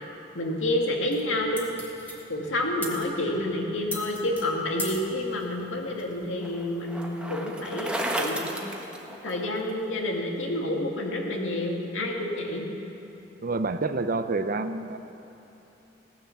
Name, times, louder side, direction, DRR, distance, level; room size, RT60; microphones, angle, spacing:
voice 1, 0.3-1.7 2.3-8.5 9.2-12.6, left 1 dB, 80° left, 0 dB, 2.2 m, -29 dB
sound 1, 1.1-6.3, left 1 dB, 10° left, 1.9 m, -41 dB
Bicycle, 5.3-9.7, right 1 dB, 5° right, 1.3 m, -34 dB
voice 2, 13.4-15.0, right 3 dB, 45° right, 10 dB, 0.7 m, -28 dB
17.5 x 10.5 x 7.1 m, 3.0 s
head